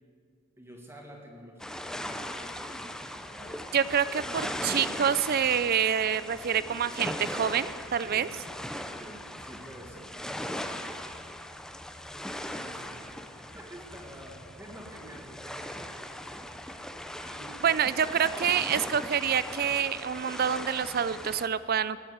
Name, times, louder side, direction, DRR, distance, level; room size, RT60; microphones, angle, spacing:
voice 1, 0.6-3.6 4.2-5.2 8.0-8.3 9.0-10.2 12.4-16.2 16.7-16.8 17.2-17.6 18.3-19.0, equal, 15° right, 0 dB, 1.6 m, -49 dB
sound 1, 1.6-21.5, left 1 dB, 5° left, 0.6 m, -39 dB
voice 2, 3.7-8.3 17.6-22.0, right 8 dB, 50° right, 16 dB, 0.5 m, -27 dB
18.0 x 7.4 x 8.1 m, 2.2 s
head